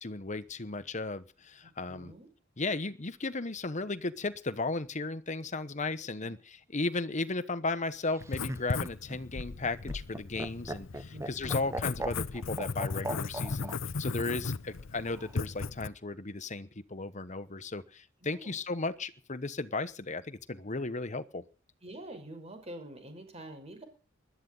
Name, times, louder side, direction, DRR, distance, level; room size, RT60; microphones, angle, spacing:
voice 1, 0.0-2.1 2.6-21.4, left 3 dB, 40° left, 13 dB, 1.1 m, -35 dB
voice 2, 1.9-2.3 6.2-6.3 11.1-11.8 18.3-18.6 21.8-23.8, right 1 dB, 35° right, 6 dB, 5.8 m, -46 dB
Laughter, 8.1-13.8 15.0-15.7, right 2 dB, 15° right, 0.9 m, -39 dB
Writing, 8.2-15.9, left 4 dB, 75° left, 0.7 m, -36 dB
20.5 x 12.5 x 4.0 m, 0.36 s
head